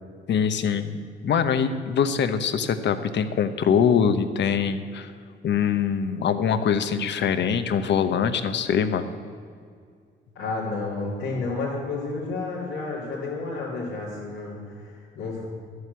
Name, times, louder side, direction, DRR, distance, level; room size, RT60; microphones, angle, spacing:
voice 1, 0.3-5.1 5.4-9.1, left 7 dB, 65° left, 10 dB, 1.0 m, -23 dB
voice 2, 10.3-15.5, left 3 dB, 90° left, -8 dB, 2.9 m, -31 dB
12.0 x 8.0 x 8.1 m, 2.2 s
cardioid pair, 90°, 20 cm